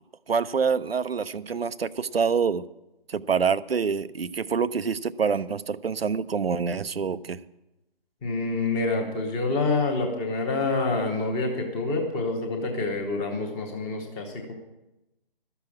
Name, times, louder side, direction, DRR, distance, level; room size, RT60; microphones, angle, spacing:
voice 1, 0.3-2.6 3.1-7.4, right 6 dB, 75° right, 15 dB, 0.6 m, -26 dB
voice 2, 8.2-14.5, left 3 dB, 10° left, 2 dB, 1.0 m, -27 dB
13.0 x 6.9 x 8.5 m, 0.96 s
figure-of-eight pair, 145°, 30 cm